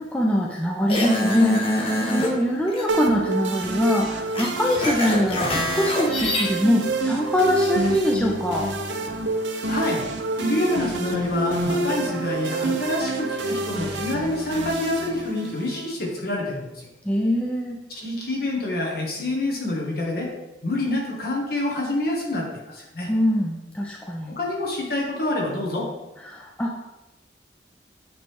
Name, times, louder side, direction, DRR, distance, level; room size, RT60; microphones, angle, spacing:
voice 1, 0.0-8.7 17.0-17.8 23.1-24.4 26.2-26.8, equal, 5° left, -1 dB, 0.4 m, -23 dB
sound 1, 0.9-2.3 2.7-2.8 4.3-6.4, left 1 dB, 30° left, 1.0 m, -24 dB
sound 2, 2.9-15.9, right 2 dB, 85° right, 0.6 m, -28 dB
voice 2, 9.7-10.0 10.4-16.9 17.9-20.3 20.6-23.1 24.3-25.9, left 1 dB, 55° left, -2 dB, 1.3 m, -27 dB
8.5 x 3.2 x 3.5 m, 1.0 s
head